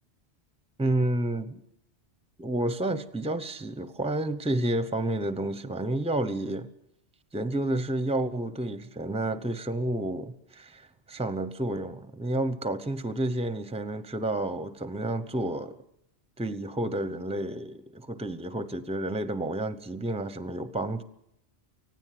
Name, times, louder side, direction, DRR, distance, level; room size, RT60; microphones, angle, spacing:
voice 1, 0.8-1.6 2.4-6.7 7.3-15.8 16.4-21.0, right 1 dB, 5° right, 0.8 m, -30 dB
24.5 x 16.5 x 7.7 m
omnidirectional pair, 1.2 m